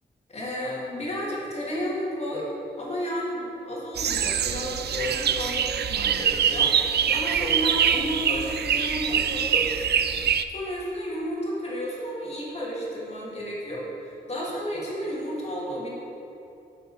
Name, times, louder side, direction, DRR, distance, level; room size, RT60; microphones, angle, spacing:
voice 1, 0.3-2.5 2.8-6.7 7.1-9.8 10.5-15.9, equal, 35° left, -5 dB, 2.1 m, -32 dB
sound 1, 4.0-10.4, right 8 dB, 65° right, 0.4 m, -24 dB
12.0 x 6.7 x 4.2 m, 2.8 s
wide cardioid pair, 175°, 18 cm